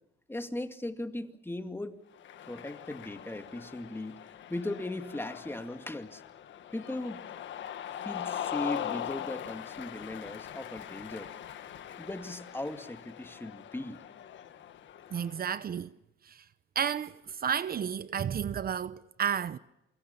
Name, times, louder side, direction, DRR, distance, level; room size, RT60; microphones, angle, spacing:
voice 1, 0.3-2.0 2.4-4.2 4.5-6.2 6.7-7.4 8.0-11.3 12.0-14.0, left 1 dB, 10° left, 2.3 m, -38 dB
Cheering, 2.1-15.6, left 10 dB, 70° left, 1.8 m, -41 dB
voice 2, 15.1-15.9 16.2-16.4 16.7-19.6, right 8 dB, 50° right, 0.9 m, -32 dB
27.5 x 24.0 x 7.1 m
cardioid pair, 90°, 20 cm